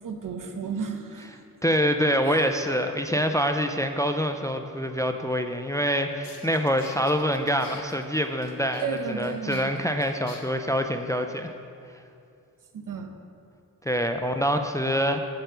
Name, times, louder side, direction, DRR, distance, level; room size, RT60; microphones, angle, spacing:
voice 1, 0.0-1.4 2.2-2.5 8.8-9.9 12.7-13.2, right 5 dB, 70° right, 5 dB, 0.9 m, -33 dB
voice 2, 1.6-8.9 9.2-11.5 13.9-15.2, equal, 10° left, 6 dB, 0.3 m, -25 dB
sound 1, 5.8-5.9 6.2-10.4, left 5 dB, 90° left, 1.1 m, -47 dB
7.5 x 6.9 x 5.5 m, 2.5 s
wide cardioid pair, 120°, 33 cm